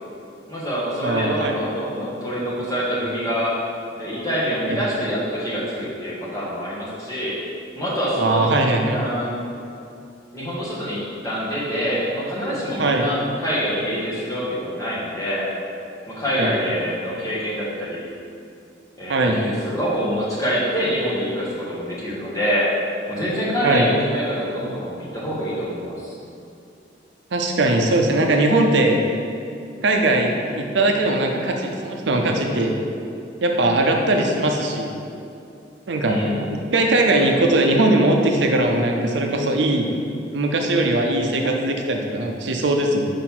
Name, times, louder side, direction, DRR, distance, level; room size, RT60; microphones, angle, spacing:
voice 1, 0.5-3.6 4.0-7.3 7.7-8.5 8.9-9.4 10.3-15.5 16.1-18.1 19.0-22.7 23.1-26.2 36.0-36.5, equal, 20° left, -8 dB, 1.5 m, -25 dB
voice 2, 1.0-1.6 4.7-4.8 8.2-9.0 12.8-13.1 16.4-16.5 19.1-19.4 23.6-23.9 27.3-29.0 29.8-32.8 33.4-34.9 35.9-36.2 36.5-39.9 40.3-43.1, right 2 dB, 65° right, 2 dB, 0.6 m, -20 dB
5.2 x 4.1 x 5.9 m, 2.6 s
head